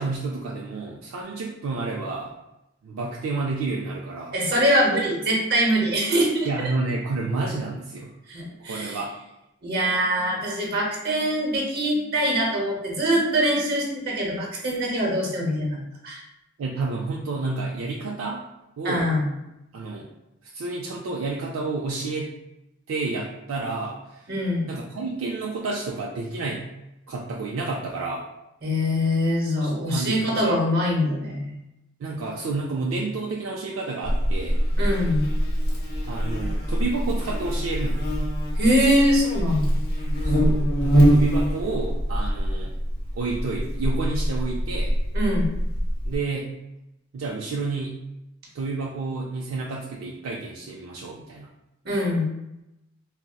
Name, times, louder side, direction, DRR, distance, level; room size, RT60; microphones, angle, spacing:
voice 1, 0.0-2.3 2.8-4.4 6.4-8.1 8.6-9.1 16.6-18.4 18.8-19.1 19.7-20.1 20.5-22.3 22.9-24.3 24.7-26.6 27.1-28.3 29.6-30.6 32.0-34.6 36.0-38.1 40.2-42.8 43.1-44.9 46.0-46.5 47.1-48.0 48.5-51.5, right 3 dB, 70° right, -2 dB, 0.4 m, -30 dB
voice 2, 4.3-6.7 8.3-9.0 9.6-15.8 16.0-16.2 18.8-19.2 24.3-24.6 28.6-31.5 34.8-35.3 38.6-39.7 45.1-45.5 51.8-52.3, equal, 50° right, -1 dB, 0.8 m, -23 dB
Buzz, 34.0-46.2, equal, 50° left, 0.7 m, -24 dB
4.0 x 2.0 x 2.3 m, 0.90 s
head